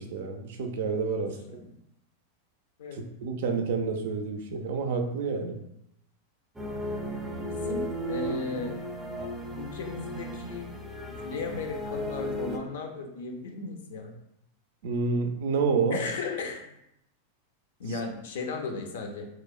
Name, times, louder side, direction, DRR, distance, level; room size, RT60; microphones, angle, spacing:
voice 1, 0.0-1.4 2.9-5.6 14.8-16.0, right 4 dB, 70° right, 5 dB, 0.4 m, -29 dB
sound 1, 6.6-12.6, equal, 10° right, 0.5 m, -35 dB
voice 2, 7.5-8.8 9.6-10.7 11.2-14.2 15.9-16.6 17.8-19.3, left 4 dB, 80° left, 3 dB, 0.5 m, -35 dB
2.8 x 2.0 x 2.3 m, 0.80 s
hypercardioid pair, 125°, 0 cm